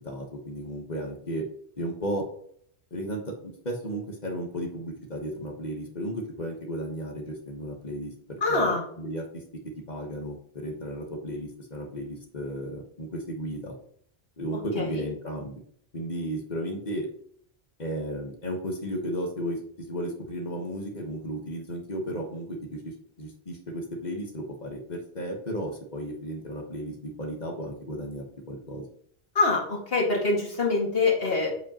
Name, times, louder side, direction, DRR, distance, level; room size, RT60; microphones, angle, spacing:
voice 1, 0.0-1.4 1.8-2.2 2.9-9.4 9.9-13.7 14.4-15.6 15.9-17.1 17.8-28.8, equal, 40° left, 2 dB, 1.4 m, -34 dB
voice 2, 8.4-8.8 14.8-15.1 29.3-31.6, left 3 dB, 65° left, -3 dB, 2.2 m, -25 dB
8.0 x 5.0 x 2.9 m, 0.64 s
omnidirectional pair, 1.1 m